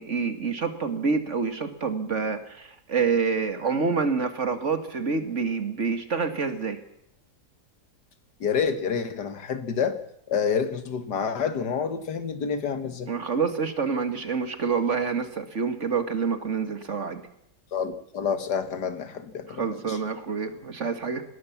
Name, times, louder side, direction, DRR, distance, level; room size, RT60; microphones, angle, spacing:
voice 1, 0.0-6.8 13.1-17.2 19.5-21.2, right 5 dB, 45° right, 9 dB, 2.0 m, -27 dB
voice 2, 8.4-10.0 10.3-13.1 17.7-20.0, left 6 dB, 75° left, 11 dB, 2.1 m, -28 dB
20.0 x 18.5 x 7.2 m, 0.76 s
omnidirectional pair, 1.8 m